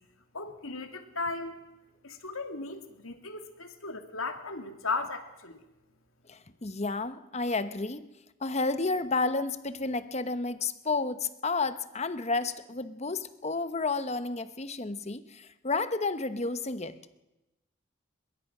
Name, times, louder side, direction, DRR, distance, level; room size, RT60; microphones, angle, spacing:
voice 1, 0.3-1.6 2.0-5.6, left 3 dB, 85° left, 6 dB, 2.6 m, -36 dB
voice 2, 6.3-8.1 8.4-17.0, left 3 dB, 30° left, 12 dB, 1.0 m, -31 dB
22.5 x 22.0 x 6.1 m, 0.97 s
head